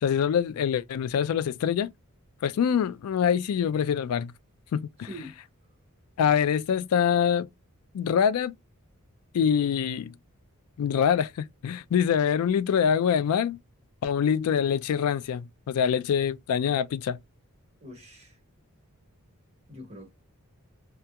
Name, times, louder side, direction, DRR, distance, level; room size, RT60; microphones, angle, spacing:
voice 1, 0.0-1.9 2.4-4.3 4.7-4.9 6.2-7.5 7.9-8.5 9.3-10.1 10.8-13.6 14.0-17.2, left 8 dB, 80° left, 0.3 m, -25 dB
voice 2, 5.0-5.4 17.8-18.4 19.7-20.1, equal, 30° right, 1.3 m, -43 dB
2.8 x 2.3 x 2.2 m
head